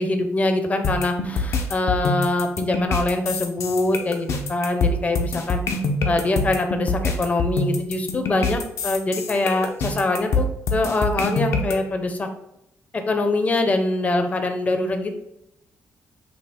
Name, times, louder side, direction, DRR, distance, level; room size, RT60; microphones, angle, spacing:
voice 1, 0.0-5.6 6.0-12.3 12.9-15.1, left 2 dB, 30° left, 6 dB, 0.6 m, -23 dB
sound 1, 0.8-11.7, left 2 dB, 70° left, 0.6 m, -25 dB
5.4 x 2.0 x 4.2 m, 0.84 s
cardioid pair, 120°, 5 cm